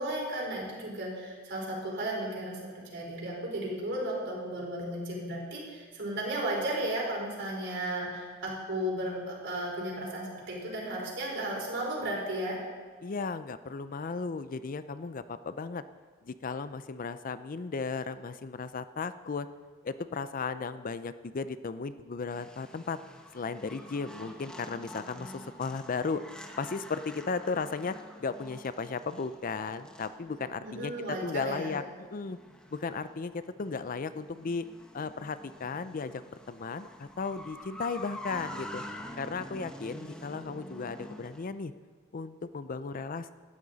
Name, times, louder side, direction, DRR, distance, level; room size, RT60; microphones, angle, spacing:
voice 1, 0.0-2.6 2.9-12.6 30.6-31.7, right 1 dB, 60° right, -2 dB, 4.5 m, -34 dB
voice 2, 13.0-15.8 16.2-19.5 19.8-23.0 23.3-26.2 26.6-31.8 32.1-32.4 32.7-34.7 34.9-36.2 36.5-38.8 39.2-41.7 42.1-43.3, left 4 dB, 40° left, 13 dB, 0.5 m, -35 dB
sound 1, 22.3-41.5, left 1 dB, 5° left, 1.1 m, -47 dB
18.5 x 12.5 x 4.0 m, 1.5 s
head